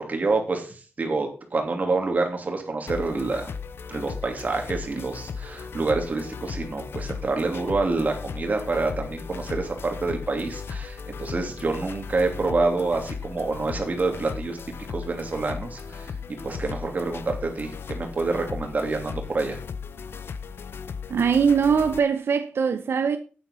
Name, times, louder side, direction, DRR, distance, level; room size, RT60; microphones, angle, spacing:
voice 1, 0.1-3.5 3.9-14.6 14.9-16.1 16.4-19.6, right 3 dB, 40° right, 2.8 m, -27 dB
sound 1, 2.9-22.0, left 6 dB, 75° left, 0.9 m, -36 dB
voice 2, 21.1-23.2, right 6 dB, 80° right, 0.8 m, -21 dB
9.2 x 8.9 x 5.5 m
wide cardioid pair, 150°, 4 cm